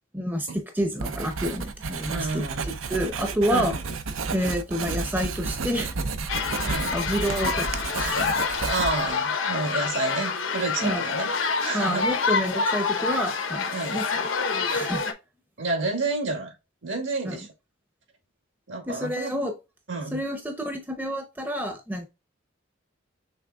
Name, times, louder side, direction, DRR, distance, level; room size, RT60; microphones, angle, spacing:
voice 1, 0.1-3.8 4.3-6.2 6.5-8.2 10.8-11.1 11.7-14.3 14.7-15.0 17.2-17.4 18.9-19.6 20.1-22.1, equal, 10° right, 0.6 m, -29 dB
Writing, 1.0-9.2, right 4 dB, 90° right, 0.7 m, -31 dB
voice 2, 2.1-2.8 3.5-3.7 6.6-7.0 8.7-12.3 13.7-14.0 15.6-16.5 16.8-17.5 18.7-19.3 19.9-20.2, right 3 dB, 70° right, 1.9 m, -30 dB
sound 1, 6.3-15.1, left 5 dB, 85° left, 1.0 m, -27 dB
6.1 x 3.4 x 2.3 m
head